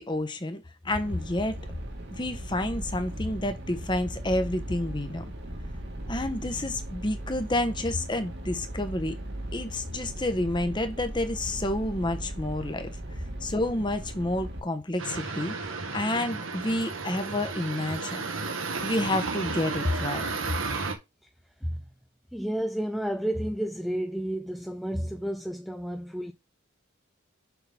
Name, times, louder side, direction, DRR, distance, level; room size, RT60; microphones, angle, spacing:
voice 1, 0.0-1.6 2.1-5.2 6.1-9.2 9.5-13.0 13.4-15.6 15.9-18.3 18.8-20.3, left 1 dB, 20° left, 1.0 m, -29 dB
sound 1, 0.9-14.6, right 1 dB, 55° right, 1.7 m, -38 dB
sound 2, 15.0-20.9, right 4 dB, 75° right, 1.5 m, -33 dB
voice 2, 22.3-26.3, right 1 dB, ahead, 0.5 m, -31 dB
7.0 x 3.8 x 5.6 m
head